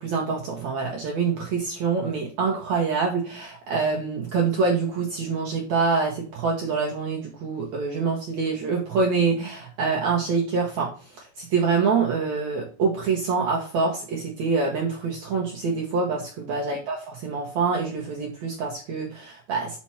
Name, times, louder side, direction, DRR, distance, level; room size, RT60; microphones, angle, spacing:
voice 1, 0.0-19.8, right 4 dB, 80° right, 0 dB, 1.6 m, -26 dB
6.0 x 5.9 x 4.3 m, 0.40 s
omnidirectional pair, 4.9 m